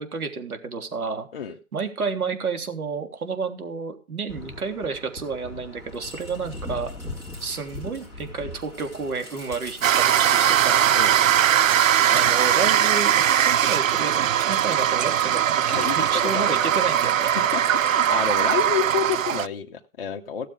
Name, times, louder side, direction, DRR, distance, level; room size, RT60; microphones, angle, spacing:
voice 1, 0.0-1.3 1.7-6.9 7.4-10.9 12.1-17.4, right 4 dB, 80° right, 5 dB, 3.6 m, -31 dB
sound 1, 4.3-11.7, left 2 dB, 5° right, 2.1 m, -40 dB
sound 2, 9.8-19.5, right 10 dB, 65° right, 0.5 m, -20 dB
voice 2, 15.7-16.7 17.3-20.5, left 8 dB, 40° left, 2 dB, 0.9 m, -29 dB
16.5 x 7.5 x 5.0 m, 0.34 s
hypercardioid pair, 165°, 43 cm